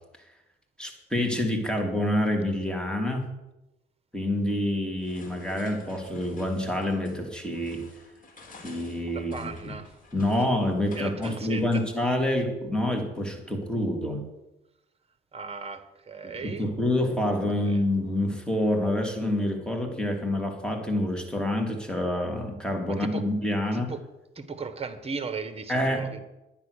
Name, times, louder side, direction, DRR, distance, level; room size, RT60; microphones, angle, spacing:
voice 1, 0.8-3.3 4.1-7.8 8.6-9.7 10.1-14.3 16.2-23.9 25.7-26.1, left 1 dB, 5° left, 2.9 m, -27 dB
sound 1, 5.0-12.0, left 3 dB, 40° left, 3.4 m, -50 dB
voice 2, 9.1-9.9 10.9-11.9 15.3-16.7 17.6-17.8 22.9-23.3 23.7-24.0 24.3-26.2, right 4 dB, 30° right, 1.5 m, -37 dB
10.5 x 9.9 x 6.7 m
cardioid pair, 90°, 20 cm